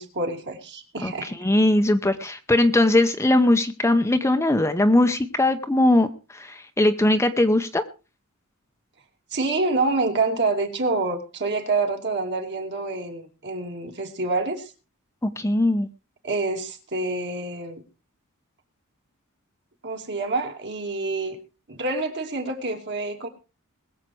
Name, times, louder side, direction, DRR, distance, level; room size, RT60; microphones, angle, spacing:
voice 1, 0.0-1.3 9.3-14.7 16.2-17.8 19.8-21.4 21.7-23.3, right 3 dB, 55° right, 3 dB, 2.8 m, -27 dB
voice 2, 1.0-7.8 15.2-15.9, left 1 dB, 10° left, 8 dB, 0.8 m, -20 dB
21.0 x 7.5 x 4.7 m, 0.32 s
head